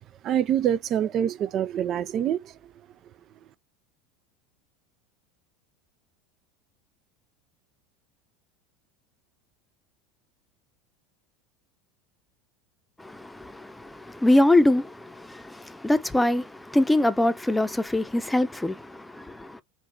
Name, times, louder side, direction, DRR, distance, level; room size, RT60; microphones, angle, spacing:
voice 1, 0.2-2.5, right 10 dB, 40° right, 0.3 m, -25 dB
voice 2, 13.0-19.6, left 1 dB, 5° left, 0.6 m, -24 dB
3.6 x 2.3 x 3.6 m
figure-of-eight pair, 80°, 0 cm